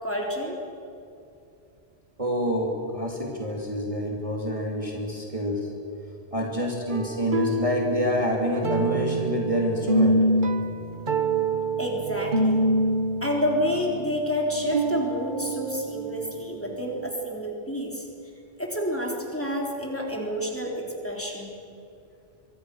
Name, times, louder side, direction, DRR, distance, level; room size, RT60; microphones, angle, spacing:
voice 1, 0.0-0.6 11.8-12.7 13.2-18.0 18.6-21.5, equal, 10° left, -1 dB, 3.8 m, -29 dB
voice 2, 2.2-5.7 6.3-10.2, equal, 25° right, -1 dB, 2.8 m, -27 dB
sound 1, 6.9-16.6 17.0-17.1, right 1 dB, 45° right, 1.3 m, -26 dB
26.0 x 23.5 x 6.4 m, 2.6 s
omnidirectional pair, 1.2 m